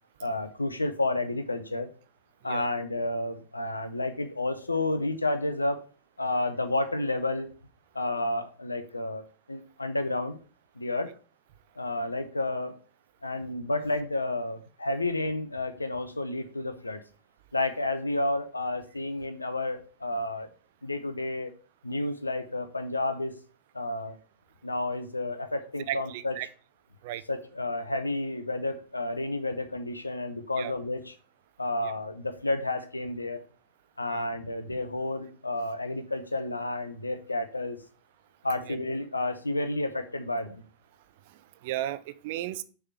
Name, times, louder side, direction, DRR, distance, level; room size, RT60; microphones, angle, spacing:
voice 1, 0.2-1.9 2.4-5.8 6.2-7.5 7.9-9.2 9.5-10.4 10.8-11.1 11.8-12.7 13.2-17.0 17.5-20.5 20.8-21.5 21.8-23.3 23.7-24.1 24.6-26.4 27.3-31.1 31.6-33.4 34.0-37.8 38.4-40.6, left 2 dB, 80° left, 0.7 m, -31 dB
voice 2, 25.9-26.5 27.0-27.2 30.6-30.7 34.1-34.3 38.7-38.8 41.3-42.6, right 13 dB, 50° right, 0.5 m, -35 dB
6.5 x 3.5 x 5.7 m
figure-of-eight pair, 90°, 0 cm